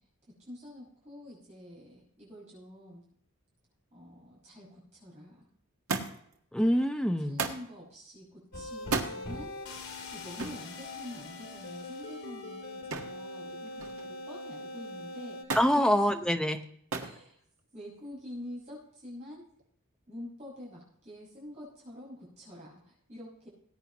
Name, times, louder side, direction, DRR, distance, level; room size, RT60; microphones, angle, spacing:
voice 1, 0.4-3.0 3.9-5.5 7.2-9.5 10.1-16.2 16.9-17.4 17.7-19.5 20.1-23.5, left 1 dB, 30° right, -5 dB, 5.8 m, -47 dB
Thump thud, 5.9-6.4 7.4-7.7 8.8-9.2 10.4-10.6 12.9-13.2 13.6-14.1 15.5-15.8 16.9-17.2 18.1-18.6 19.6-19.7, right 4 dB, 80° right, 1.7 m, -34 dB
voice 2, 6.5-7.4 15.5-16.6, equal, 5° left, 5 dB, 0.7 m, -25 dB
sound 1, 8.5-15.4, left 2 dB, 85° left, 3.0 m, -42 dB
19.5 x 9.0 x 3.0 m, 0.65 s
head